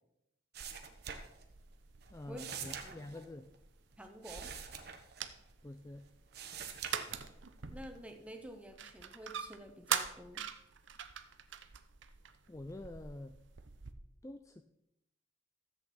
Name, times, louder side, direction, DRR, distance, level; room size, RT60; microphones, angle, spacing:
sound 1, 0.5-5.8 6.1-7.6 8.1-8.6, right 7 dB, 55° right, 1.3 m, -46 dB
sound 2, 0.6-13.9, right 8 dB, 70° right, 0.8 m, -44 dB
voice 1, 2.1-3.5 5.6-6.1 12.5-13.3 14.2-14.6, left 1 dB, 15° left, 9 dB, 0.4 m, -47 dB
voice 2, 2.8-3.2 4.0-4.5 7.7-10.4, equal, 5° right, 5 dB, 1.1 m, -50 dB
13.5 x 8.2 x 4.4 m, 0.84 s
head